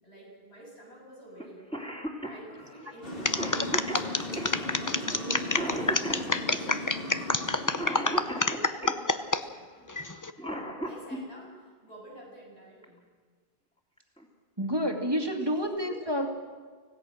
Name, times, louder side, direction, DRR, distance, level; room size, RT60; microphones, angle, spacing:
voice 1, 0.0-1.6 2.3-3.7 4.7-6.9 7.2-10.0 10.8-13.0 15.4-16.2, right 1 dB, 90° left, -3 dB, 7.7 m, -49 dB
Cough, 1.4-1.5 1.7-9.0 10.2-11.2 12.8-12.9 14.0-14.2 14.7-14.8 15.2-15.7, right 1 dB, 5° left, 2.6 m, -37 dB
sound 1, 3.0-8.6, left 1 dB, 60° left, 3.0 m, -38 dB
sound 2, 3.2-9.4 9.9-10.3, left 3 dB, 20° left, 0.7 m, -27 dB
voice 2, 14.6-16.3, equal, 25° right, 2 dB, 2.2 m, -29 dB
25.5 x 17.0 x 6.4 m, 1.5 s
omnidirectional pair, 1.1 m